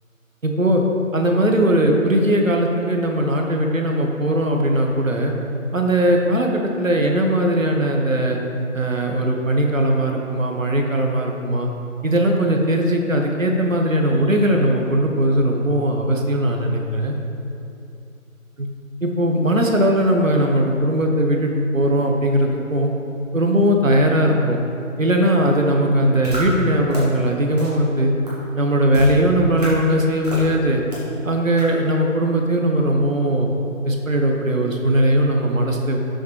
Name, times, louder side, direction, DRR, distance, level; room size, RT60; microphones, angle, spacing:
voice 1, 0.4-0.8 1.1-5.3 5.7-8.4 8.7-11.7 12.0-17.1 18.6-18.7 19.0-22.9 23.3-24.6 25.0-28.1 28.6-30.8 31.2-33.5 33.8-36.0, right 1 dB, 70° right, 2 dB, 1.4 m, -19 dB
sound 1, 26.2-26.4 26.9-27.0 27.6-27.7 28.3-28.4 28.9-29.1 29.6-29.7 30.2-30.4 30.9-31.0 31.6-31.7, equal, 30° right, 2.0 m, -28 dB
12.5 x 6.4 x 3.3 m, 2.7 s
figure-of-eight pair, 175°, 41 cm